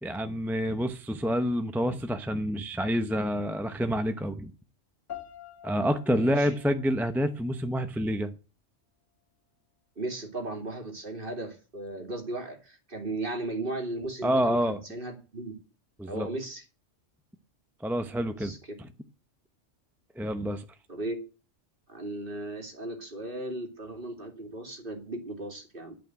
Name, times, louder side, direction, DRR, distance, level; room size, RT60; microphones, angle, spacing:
voice 1, 0.0-4.5 5.6-8.3 14.2-14.8 16.0-16.3 17.8-18.5 20.2-20.6, equal, ahead, 8 dB, 0.7 m, -28 dB
sound 1, 5.1-8.1, left 11 dB, 75° left, 2.3 m, -47 dB
voice 2, 6.1-6.5 10.0-15.5 16.1-16.6 18.4-18.6 20.9-21.2 21.9-25.9, right 2 dB, 45° right, 3 dB, 2.7 m, -36 dB
11.5 x 5.8 x 7.6 m, 0.34 s
omnidirectional pair, 1.3 m